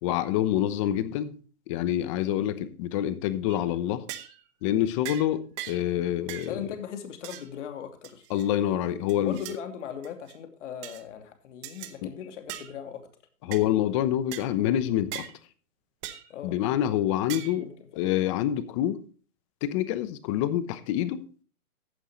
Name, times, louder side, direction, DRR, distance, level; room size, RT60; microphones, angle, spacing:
voice 1, 0.0-1.3 1.7-4.0 4.6-6.6 8.3-9.4 12.0-12.1 13.4-15.2 16.4-19.0 19.6-21.2, left 12 dB, 20° left, 0.8 m, -27 dB
sound 1, 3.5-3.7 4.1-4.4 5.0-5.3 5.6-5.9 6.3-6.5 7.2-7.5 8.0-8.5 9.1-9.6 10.0-10.3 10.8-11.0 11.6-11.9 12.5-12.7 13.5-13.6 14.3-14.5 15.1-15.3 16.0-16.3 17.3-17.6, right 13 dB, 20° right, 0.9 m, -39 dB
voice 2, 6.5-8.3 9.1-13.1 16.3-16.6 17.6-17.7, left 8 dB, 50° left, 2.8 m, -39 dB
14.5 x 9.7 x 3.1 m
hypercardioid pair, 150°, 45 cm